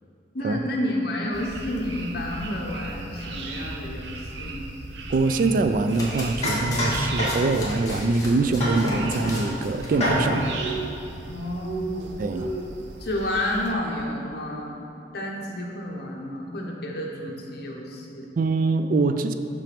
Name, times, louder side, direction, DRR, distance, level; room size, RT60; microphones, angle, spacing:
voice 1, 0.3-4.7 11.3-12.6 13.0-14.8 15.1-18.3, left 1 dB, 60° left, -1 dB, 1.1 m, -30 dB
sound 1, 1.3-13.7, right 2 dB, 80° right, 0.7 m, -36 dB
voice 2, 5.1-10.5 12.2-12.5 18.4-19.3, right 3 dB, 50° right, 9 dB, 0.3 m, -24 dB
Domestic sounds home sounds, 5.6-9.9 10.2-10.4 10.7-10.8, left 2 dB, 20° left, 1.5 m, -38 dB
sound 2, 5.7-5.8 6.4-7.7 8.6-9.5 9.9-10.5, equal, 40° left, 1.7 m, -26 dB
6.0 x 5.8 x 5.2 m, 2.9 s
head